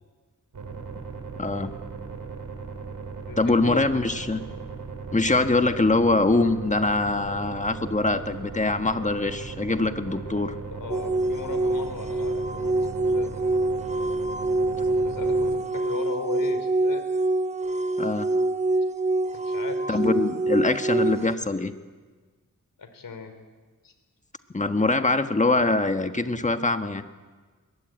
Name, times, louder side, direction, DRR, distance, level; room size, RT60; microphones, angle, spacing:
sound 1, 0.5-15.6, right 5 dB, 70° right, 3.9 m, -38 dB
voice 1, 1.4-1.7 3.4-4.4 5.1-10.6 18.0-18.3 19.9-21.7 24.5-27.0, left 2 dB, 20° left, 8 dB, 1.5 m, -23 dB
voice 2, 3.1-3.8 10.7-13.3 14.7-17.1 19.3-20.0 22.8-23.3 23.8-23.9, left 5 dB, 85° left, 8 dB, 3.5 m, -37 dB
sound 2, 10.9-21.3, right 2 dB, 20° right, 0.8 m, -25 dB
23.0 x 21.0 x 9.1 m, 1.4 s
wide cardioid pair, 105°, 33 cm